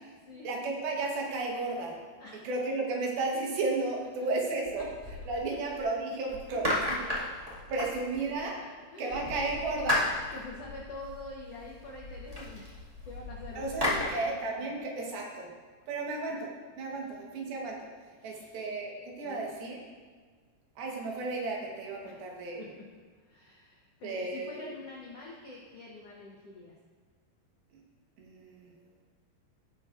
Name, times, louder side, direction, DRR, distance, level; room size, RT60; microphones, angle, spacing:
voice 1, 0.4-2.0 2.4-4.9 5.3-7.1 7.7-8.6 9.0-10.1 13.6-15.5 15.9-16.5 16.8-17.8 18.2-19.8 20.8-22.7 24.0-24.7 28.2-28.7, right 3 dB, 80° right, -1 dB, 3.1 m, -33 dB
sound 1, 4.6-5.8 6.3-8.5 9.1-14.0, left 1 dB, 20° right, 0.9 m, -35 dB
voice 2, 8.6-9.2 10.3-14.2 15.9-16.0 16.9-17.0 18.2-18.6 19.2-19.5 22.0-22.2 22.6-22.8 23.2-26.8, left 3 dB, 75° left, -3 dB, 1.4 m, -46 dB
17.0 x 6.5 x 2.5 m, 1.6 s
omnidirectional pair, 4.3 m